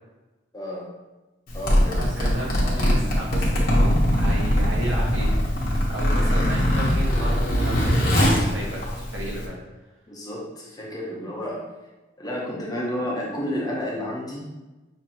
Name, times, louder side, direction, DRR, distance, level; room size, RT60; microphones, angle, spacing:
voice 1, 0.5-0.9 1.5-2.1 6.3-6.5 10.1-11.7 12.2-14.4, equal, 20° left, -4 dB, 0.8 m, -31 dB
Zipper (clothing), 1.5-9.5, equal, 45° left, 1.1 m, -21 dB
voice 2, 1.9-5.3 5.6-9.6, right 1 dB, 85° right, -4 dB, 1.4 m, -33 dB
6.3 x 2.9 x 2.9 m, 1.1 s
head